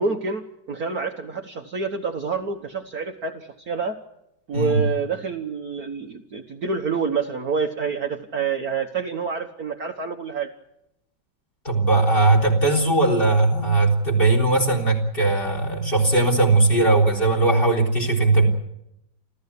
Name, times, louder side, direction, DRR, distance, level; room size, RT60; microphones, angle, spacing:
voice 1, 0.0-4.0 4.5-10.5, right 5 dB, 50° right, 4 dB, 1.6 m, -27 dB
voice 2, 11.6-18.5, right 2 dB, 25° left, 0 dB, 3.9 m, -19 dB
29.5 x 13.5 x 8.4 m, 0.82 s
omnidirectional pair, 2.3 m